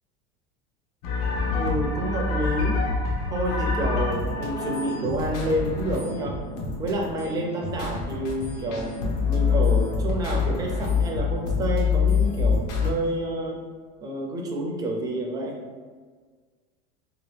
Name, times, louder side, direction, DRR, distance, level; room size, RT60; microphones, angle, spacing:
sound 1, 1.0-12.9, left 5 dB, 80° left, 0.7 m, -26 dB
voice 1, 1.5-2.8 3.3-6.4 6.8-13.6 14.0-15.6, right 1 dB, 20° right, 0 dB, 0.5 m, -29 dB
3.0 x 2.8 x 3.3 m, 1.5 s
cardioid pair, 170°, 19 cm